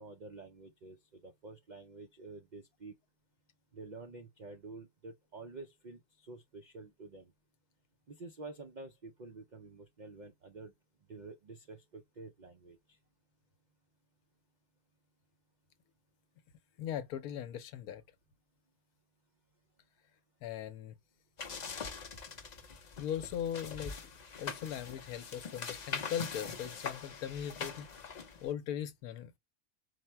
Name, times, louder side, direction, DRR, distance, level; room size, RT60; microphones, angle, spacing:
voice 1, 0.0-2.9 3.7-7.3 8.1-10.7 11.1-13.0, right 3 dB, 75° right, 0.4 m, -49 dB
voice 2, 16.8-18.0 20.4-20.9 23.0-23.9 24.4-27.9 28.4-29.3, left 9 dB, 80° left, 1.1 m, -39 dB
sound 1, 21.4-28.5, left 5 dB, 50° left, 0.5 m, -43 dB
4.7 x 2.1 x 4.4 m
omnidirectional pair, 1.5 m